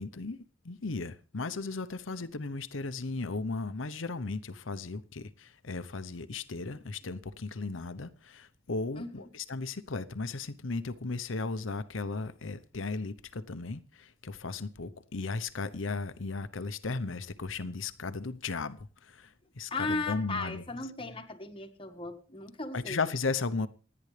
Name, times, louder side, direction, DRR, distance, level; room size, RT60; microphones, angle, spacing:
voice 1, 0.0-20.6 22.7-23.7, left 3 dB, 80° left, 0.9 m, -36 dB
voice 2, 8.9-9.3 19.7-23.0, left 3 dB, 25° left, 1.6 m, -36 dB
27.5 x 9.7 x 3.3 m
head